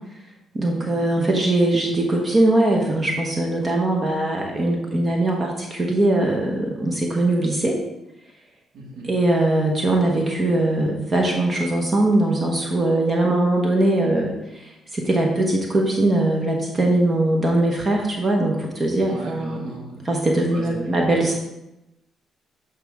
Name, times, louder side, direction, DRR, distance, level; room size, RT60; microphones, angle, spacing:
voice 1, 0.5-7.8 9.0-14.6 14.9-19.6 20.0-21.4, right 1 dB, 35° right, 0 dB, 1.1 m, -21 dB
voice 2, 8.7-9.1 19.0-20.1 20.5-20.9, right 2 dB, 70° right, -2 dB, 2.1 m, -35 dB
8.1 x 4.8 x 3.6 m, 0.90 s
cardioid pair, 90°, 0 cm